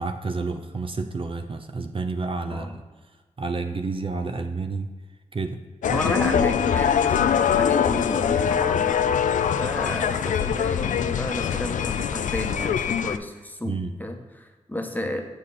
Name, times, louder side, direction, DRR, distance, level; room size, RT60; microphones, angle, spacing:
voice 1, 0.0-2.8 3.4-4.9 5.3-5.6 5.9-6.3 13.6-13.9, right 3 dB, 45° right, 6 dB, 0.6 m, -30 dB
sound 1, 5.8-13.2, left 8 dB, 80° left, 0.4 m, -23 dB
voice 2, 5.9-8.9 9.6-15.2, left 1 dB, 15° left, 4 dB, 1.2 m, -31 dB
7.3 x 6.8 x 4.2 m, 1.3 s
cardioid pair, 45°, 13 cm